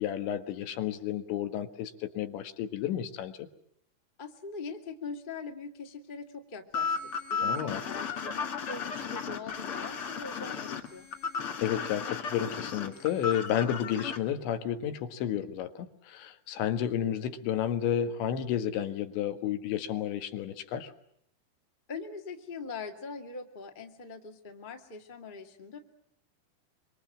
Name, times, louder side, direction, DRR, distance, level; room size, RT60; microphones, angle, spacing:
voice 1, 0.0-3.4 7.4-7.8 11.6-20.9, left 10 dB, 75° left, 8 dB, 3.7 m, -31 dB
voice 2, 4.2-11.1 21.9-25.8, left 4 dB, 35° left, 4 dB, 0.8 m, -42 dB
sound 1, 6.7-14.2, left 6 dB, 55° left, 1.5 m, -34 dB
26.0 x 25.5 x 7.4 m, 0.71 s
omnidirectional pair, 5.5 m